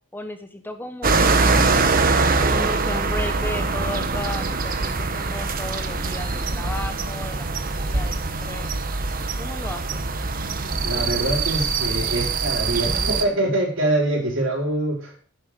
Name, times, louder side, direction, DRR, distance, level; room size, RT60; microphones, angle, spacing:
voice 1, 0.1-1.8 2.4-8.7 9.4-10.0, left 1 dB, 10° left, 8 dB, 1.0 m, -35 dB
sound 1, 1.0-13.2, right 3 dB, 45° right, 1.3 m, -23 dB
voice 2, 10.8-15.1, right 1 dB, 65° right, 1 dB, 4.7 m, -24 dB
10.5 x 10.5 x 5.2 m, 0.42 s
head